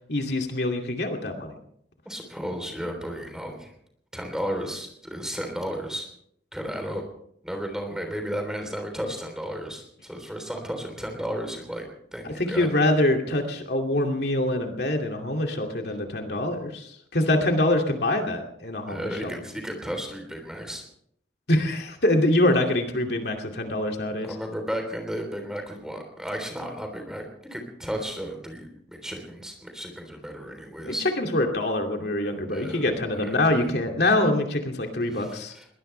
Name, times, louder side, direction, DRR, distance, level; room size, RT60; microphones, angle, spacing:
voice 1, 0.1-1.5 12.2-19.3 21.5-24.3 30.8-35.5, left 1 dB, 70° left, 3 dB, 2.5 m, -25 dB
voice 2, 2.1-3.7 4.1-6.1 6.5-7.0 7.4-11.9 12.1-12.7 18.9-20.8 24.2-31.1 32.5-33.7 35.1-35.7, equal, 5° right, 3 dB, 3.5 m, -34 dB
21.5 x 19.0 x 3.3 m, 0.67 s
head